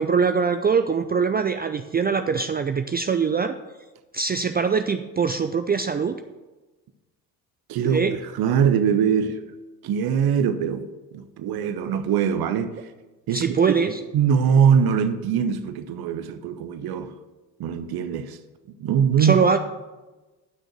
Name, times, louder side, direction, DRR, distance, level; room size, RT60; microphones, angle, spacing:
voice 1, 0.0-3.5 4.1-6.2 7.8-8.2 13.3-14.0 19.2-19.6, right 5 dB, 20° right, 0.5 m, -22 dB
voice 2, 7.7-9.4 9.8-10.9 11.1-12.7 13.3-13.6 14.1-17.1 17.6-18.4 18.8-19.4, right 7 dB, 50° right, 0.9 m, -22 dB
11.0 x 6.3 x 6.1 m
hypercardioid pair, 55°, 47 cm